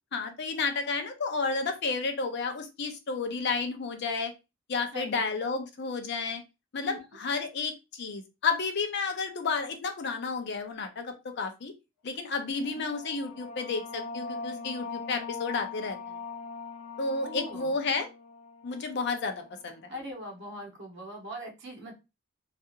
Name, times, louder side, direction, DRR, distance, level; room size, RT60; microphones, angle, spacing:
voice 1, 0.1-4.3 4.7-6.4 6.7-11.7 12.0-16.1 17.0-18.1 18.6-19.8, left 4 dB, 55° left, 6 dB, 0.5 m, -31 dB
sound 1, 12.4-19.7, left 4 dB, 80° left, 1.0 m, -41 dB
voice 2, 12.6-12.9 17.2-17.7 19.9-21.9, right 1 dB, 55° right, 1 dB, 0.9 m, -40 dB
2.7 x 2.4 x 2.3 m, 0.26 s
head